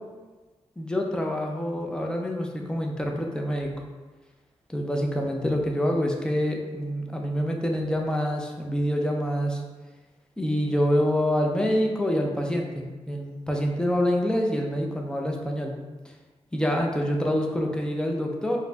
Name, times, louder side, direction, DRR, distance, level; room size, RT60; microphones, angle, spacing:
voice 1, 0.8-3.7 4.7-9.6 10.4-15.7 16.5-18.6, equal, 5° left, 1 dB, 0.4 m, -26 dB
4.2 x 2.5 x 2.3 m, 1.3 s
wide cardioid pair, 145°, 11 cm